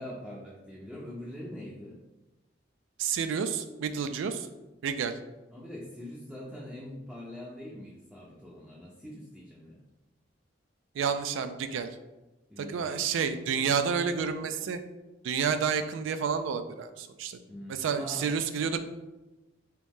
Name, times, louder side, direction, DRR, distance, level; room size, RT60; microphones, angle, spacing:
voice 1, 0.0-2.0 5.5-9.8 12.5-13.1 17.5-18.3, left 1 dB, ahead, -6 dB, 0.5 m, -43 dB
voice 2, 3.0-4.5 4.8-5.2 10.9-12.0 12.6-14.8 15.2-17.4 17.7-18.8, right 6 dB, 90° right, 9 dB, 0.3 m, -30 dB
3.0 x 2.6 x 3.5 m, 1.1 s
head